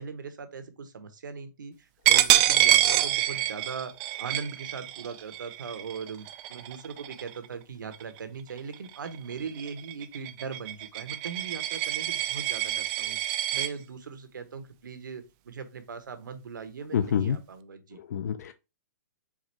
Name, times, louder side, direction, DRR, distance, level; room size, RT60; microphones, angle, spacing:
voice 1, 0.0-13.2 13.5-18.0, right 5 dB, 85° right, 1.0 m, -40 dB
Coin (dropping), 2.1-7.5 7.9-8.2 8.6-13.7, right 14 dB, 25° right, 0.3 m, -26 dB
voice 2, 16.9-17.4 18.0-18.5, left 8 dB, 55° left, 0.5 m, -27 dB
4.8 x 2.5 x 4.2 m
hypercardioid pair, 150°, 10 cm